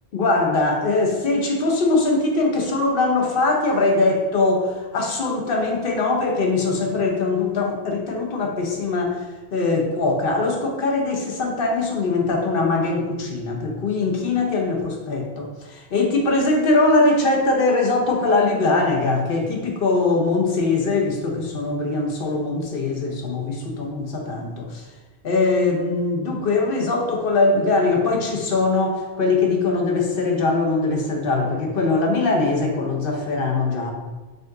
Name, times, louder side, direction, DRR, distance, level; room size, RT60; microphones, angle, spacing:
voice 1, 0.1-9.2 9.5-24.8 25.2-33.9, left 3 dB, 60° left, 1 dB, 0.9 m, -21 dB
5.1 x 2.5 x 3.7 m, 1.2 s
omnidirectional pair, 1.1 m